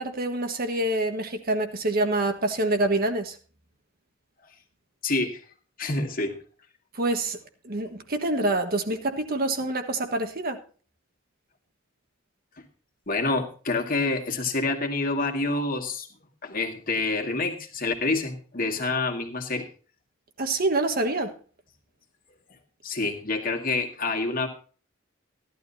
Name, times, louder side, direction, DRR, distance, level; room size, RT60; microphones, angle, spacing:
voice 1, 0.0-3.4 6.9-7.4 7.6-10.6 20.4-21.3, right 2 dB, 45° right, 6 dB, 1.5 m, -26 dB
voice 2, 5.0-5.4 5.8-6.4 13.1-16.1 16.4-19.7 22.8-24.5, left 3 dB, 45° left, 2 dB, 1.9 m, -27 dB
16.0 x 12.0 x 2.7 m, 0.39 s
head